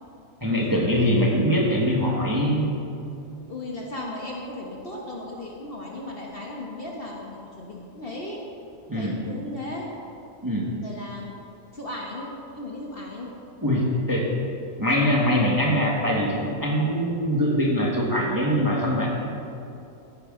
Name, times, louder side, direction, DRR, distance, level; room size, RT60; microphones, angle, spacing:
voice 1, 0.4-2.7 8.9-9.2 10.4-10.7 13.6-14.3 14.8-19.1, equal, 15° right, -3 dB, 1.4 m, -23 dB
voice 2, 3.5-8.4 8.9-9.9 10.8-11.3 11.7-13.3, left 1 dB, 40° left, -2 dB, 1.3 m, -36 dB
15.0 x 9.9 x 3.8 m, 2.7 s
omnidirectional pair, 1.7 m